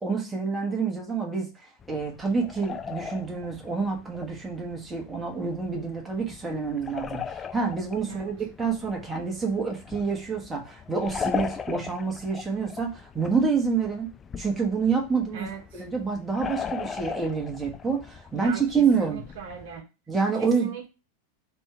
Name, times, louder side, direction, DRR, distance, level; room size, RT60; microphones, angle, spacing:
voice 1, 0.0-14.1 14.4-15.5 15.7-19.2 20.1-20.7, right 5 dB, 10° right, 0 dB, 1.2 m, -27 dB
sound 1, 1.8-19.8, left 6 dB, 20° left, 0.3 m, -39 dB
voice 2, 15.3-15.8 18.3-19.9 20.4-20.9, right 6 dB, 55° right, 1 dB, 0.8 m, -39 dB
3.4 x 2.9 x 4.6 m, 0.29 s
figure-of-eight pair, 90°, 0 cm